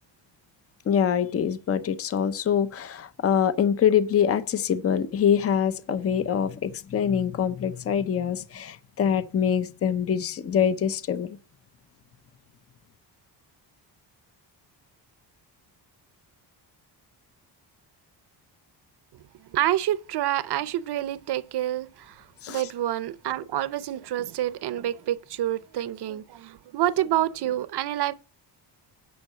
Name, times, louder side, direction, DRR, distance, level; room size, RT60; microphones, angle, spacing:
voice 1, 0.9-11.3 22.4-22.6, left 8 dB, 30° left, 0.6 m, -24 dB
voice 2, 19.4-28.1, right 12 dB, 60° right, 0.7 m, -28 dB
9.5 x 5.6 x 7.4 m
wide cardioid pair, 180°, 45 cm